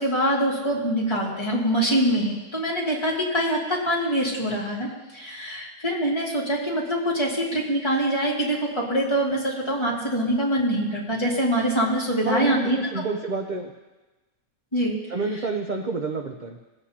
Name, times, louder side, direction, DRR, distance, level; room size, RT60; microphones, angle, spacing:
voice 1, 0.0-12.8 14.7-15.0, right 1 dB, 20° left, -5 dB, 2.3 m, -24 dB
voice 2, 12.2-13.7 15.1-16.6, right 3 dB, 45° right, 3 dB, 0.6 m, -28 dB
20.5 x 8.1 x 2.9 m, 1.2 s
omnidirectional pair, 1.6 m